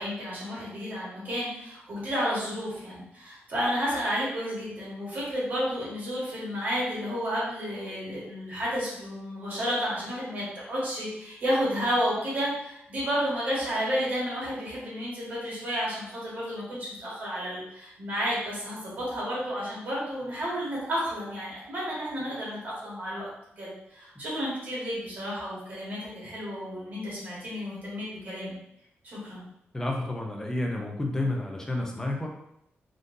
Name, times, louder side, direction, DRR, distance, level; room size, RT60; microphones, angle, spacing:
voice 1, 0.0-28.6 29.0-29.4, equal, 45° right, -7 dB, 1.4 m, -31 dB
voice 2, 29.7-32.3, left 2 dB, 15° left, 0 dB, 0.5 m, -30 dB
3.6 x 2.5 x 2.6 m, 0.78 s
wide cardioid pair, 180°, 4 cm